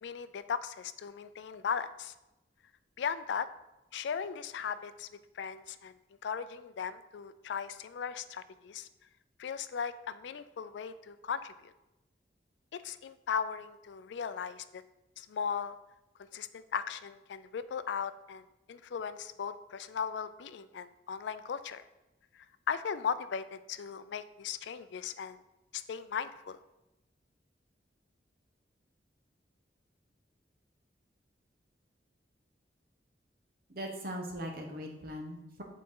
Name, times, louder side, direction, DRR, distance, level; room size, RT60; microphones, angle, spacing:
voice 1, 0.0-2.1 3.0-3.5 3.9-5.1 5.4-5.9 6.2-8.9 9.4-11.5 12.8-14.8 15.2-15.8 16.3-18.4 18.7-21.8 22.7-25.4 25.7-26.6, left 6 dB, 80° left, 13 dB, 0.4 m, -37 dB
voice 2, 33.7-35.6, equal, 55° right, 2 dB, 1.1 m, -40 dB
7.7 x 4.1 x 3.7 m, 0.97 s
head